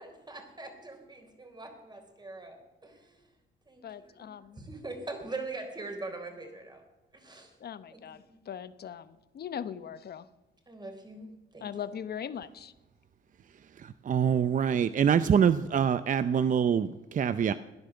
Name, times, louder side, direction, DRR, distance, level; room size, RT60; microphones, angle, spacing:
voice 1, 0.0-3.3 3.7-6.8 7.1-7.6 7.9-8.4 10.7-11.8, right 3 dB, 20° right, 5 dB, 3.8 m, -43 dB
voice 2, 3.8-4.6 7.6-10.3 11.6-12.7, left 8 dB, 55° left, 14 dB, 0.9 m, -40 dB
voice 3, 13.8-17.5, right 7 dB, 40° right, 13 dB, 0.6 m, -25 dB
16.0 x 10.5 x 6.9 m, 1.1 s
cardioid pair, 90°, 20 cm